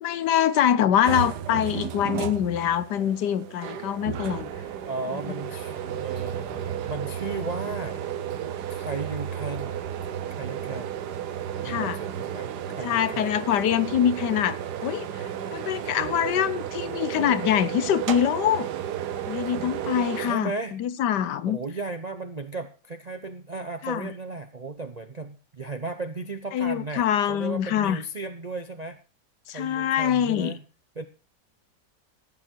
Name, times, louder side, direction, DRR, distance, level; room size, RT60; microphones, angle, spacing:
voice 1, 0.0-4.5 11.6-12.0 12.8-18.7 19.3-21.6 23.8-24.1 26.5-28.0 29.5-30.5, left 10 dB, 75° left, 1.3 m, -24 dB
sound 1, 1.0-20.3, right 9 dB, 70° right, 1.4 m, -33 dB
voice 2, 4.9-8.0 8.7-9.8 10.4-11.0 11.6-12.5 12.8-13.4 20.2-20.7 21.5-29.0 29.5-30.6 31.0-31.1, right 3 dB, 45° right, 0.5 m, -35 dB
15.5 x 9.0 x 4.5 m
omnidirectional pair, 1.9 m